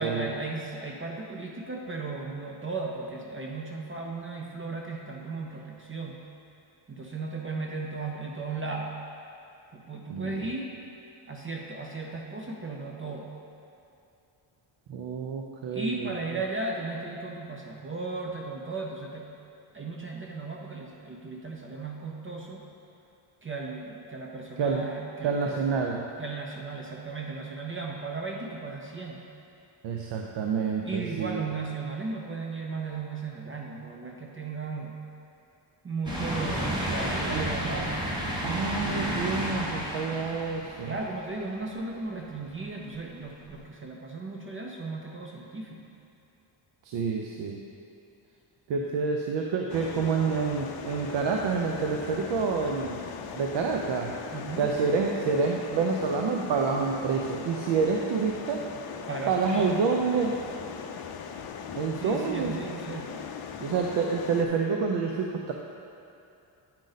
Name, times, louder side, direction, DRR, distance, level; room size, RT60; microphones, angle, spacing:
voice 1, 0.0-6.2 6.9-9.0 9.7-10.7 11.3-13.3 15.7-19.3 19.7-22.6 23.4-25.8 26.2-29.2 30.8-35.0 35.8-38.1 40.8-46.0 54.3-54.7 59.1-59.9 61.9-63.1, right 3 dB, 25° right, 0 dB, 0.5 m, -36 dB
voice 2, 10.1-10.5 14.9-16.1 24.6-24.8 25.2-26.1 29.8-31.4 37.3-37.5 38.4-40.9 46.8-47.6 48.7-53.0 53.3-54.1 54.6-58.6 59.3-60.4 61.8-62.6 63.6-65.5, right 5 dB, 65° right, 1 dB, 0.6 m, -28 dB
sound 1, 36.1-41.6 42.1-42.2 43.6-43.7, equal, 10° right, 1.2 m, -32 dB
sound 2, 49.7-64.5, left 7 dB, 50° left, 0.5 m, -39 dB
8.7 x 5.1 x 4.0 m, 2.6 s
cardioid pair, 125°, 48 cm